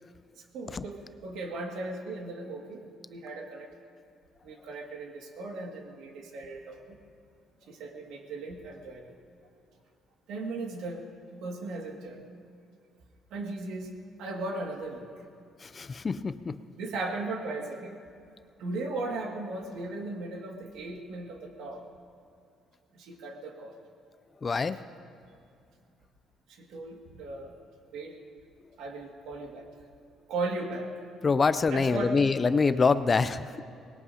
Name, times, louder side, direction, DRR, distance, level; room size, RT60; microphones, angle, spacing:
voice 1, 0.4-3.7 4.4-7.0 7.7-9.1 10.3-12.2 13.3-13.9 14.2-15.1 16.8-18.0 18.6-21.8 22.9-23.8 26.5-27.5 27.9-28.2 28.8-29.7 30.3-30.9 31.7-32.2, right 2 dB, 75° right, 1 dB, 2.1 m, -37 dB
voice 2, 15.6-16.6 24.4-24.8 31.2-33.6, left 4 dB, 20° left, 13 dB, 0.3 m, -25 dB
24.0 x 20.0 x 2.8 m, 2.4 s
cardioid pair, 175°, 0 cm